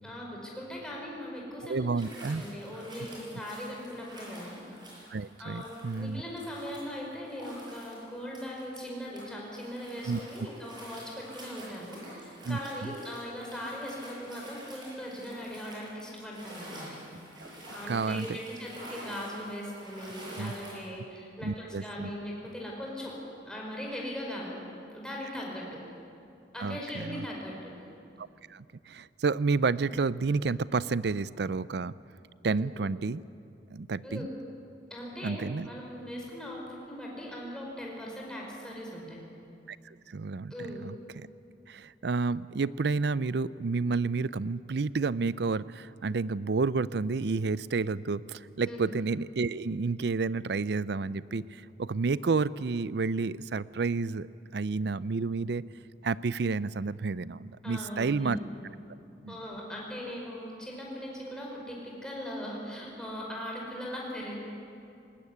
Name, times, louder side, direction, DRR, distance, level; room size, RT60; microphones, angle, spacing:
voice 1, 0.0-4.6 5.4-17.0 17.7-23.1 23.5-24.6 24.9-25.7 26.5-27.7 32.5-32.9 34.0-34.3 34.9-39.2 40.5-40.8 48.6-48.9 57.6-58.5 59.3-64.4, equal, 5° left, -3 dB, 4.9 m, -39 dB
voice 2, 1.6-2.4 5.1-6.2 10.1-10.5 12.4-12.9 17.4-17.5 17.9-18.4 20.4-20.5 21.4-22.1 26.6-27.3 28.2-31.9 32.4-33.2 33.7-34.3 35.2-35.7 39.7-39.8 40.1-40.5 40.8-41.3 41.7-54.3 54.5-55.6 56.0-58.4 59.2-59.4, right 4 dB, 65° right, 18 dB, 0.5 m, -30 dB
sound 1, 1.9-9.2 9.6-20.8, right 1 dB, 25° right, 7.8 m, -48 dB
20.0 x 19.0 x 9.6 m, 2.6 s
head